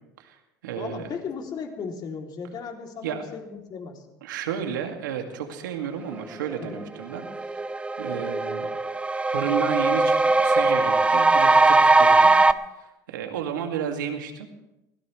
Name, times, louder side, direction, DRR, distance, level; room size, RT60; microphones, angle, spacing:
voice 1, 0.2-1.1 3.0-3.2 4.2-7.3 8.0-8.7 9.3-12.3 12.8-14.5, right 8 dB, 85° right, 4 dB, 2.2 m, -32 dB
voice 2, 0.7-4.0 6.6-6.8, left 5 dB, 45° left, 2 dB, 3.0 m, -36 dB
sound 1, 6.7-6.8 7.2-12.5, right 3 dB, 10° right, 0.6 m, -20 dB
24.0 x 17.0 x 3.3 m, 0.93 s
hypercardioid pair, 90°, 10 cm